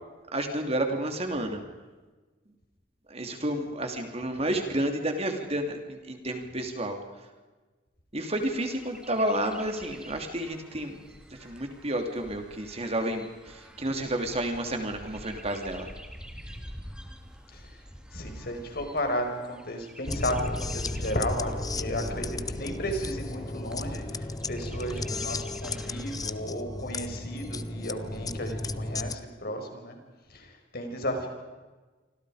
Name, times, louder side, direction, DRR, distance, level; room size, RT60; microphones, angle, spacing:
voice 1, 0.3-1.6 3.1-7.0 8.1-11.0 11.4-15.9, right 1 dB, 35° right, 5 dB, 3.1 m, -30 dB
Chirp tweet, 8.4-26.4, equal, 5° right, 2.6 m, -47 dB
voice 2, 17.5-17.8 18.1-30.0 30.3-31.3, equal, 60° left, 4 dB, 5.4 m, -34 dB
sound 1, 20.1-29.2, left 2 dB, 20° left, 0.8 m, -34 dB
28.0 x 25.5 x 5.1 m, 1.3 s
head